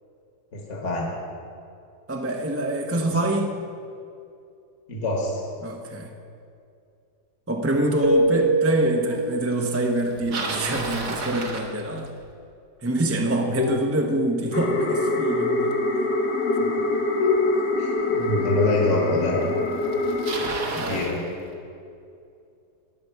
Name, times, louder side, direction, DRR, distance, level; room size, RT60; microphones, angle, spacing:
voice 1, 0.5-1.1 2.9-3.0 3.3-3.4 4.9-5.4 9.2-9.3 13.6-13.7 16.6-16.7 17.2-17.4 17.7-19.4 20.8-21.3, left 3 dB, 45° left, -1 dB, 1.7 m, -25 dB
voice 2, 2.1-3.5 5.6-6.1 7.5-12.1 12.8-15.8 20.7-21.0, right 1 dB, 15° right, 2 dB, 0.4 m, -25 dB
Keyboard (musical), 8.0-10.0, right 2 dB, 35° right, 1.1 m, -24 dB
Bicycle, 10.0-12.3 17.4-17.5 18.3-18.4 19.4-19.5 19.7-21.2, right 2 dB, 70° right, 1.9 m, -31 dB
sound 1, 14.5-20.5, left 2 dB, 80° left, 1.9 m, -25 dB
21.0 x 7.0 x 4.6 m, 2.6 s
omnidirectional pair, 1.8 m